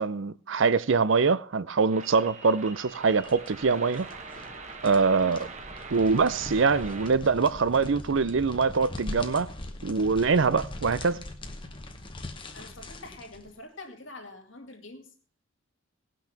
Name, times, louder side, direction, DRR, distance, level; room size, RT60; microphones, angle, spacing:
voice 1, 0.0-4.1 4.8-5.5 5.9-9.5 9.8-11.2, right 4 dB, 65° right, 0.5 m, -24 dB
sound 1, 1.9-7.1, right 4 dB, 30° right, 1.2 m, -43 dB
sound 2, 2.8-13.5, left 1 dB, 25° left, 1.0 m, -41 dB
voice 2, 12.0-15.1, left 2 dB, 65° left, 2.5 m, -46 dB
18.5 x 6.1 x 5.8 m
head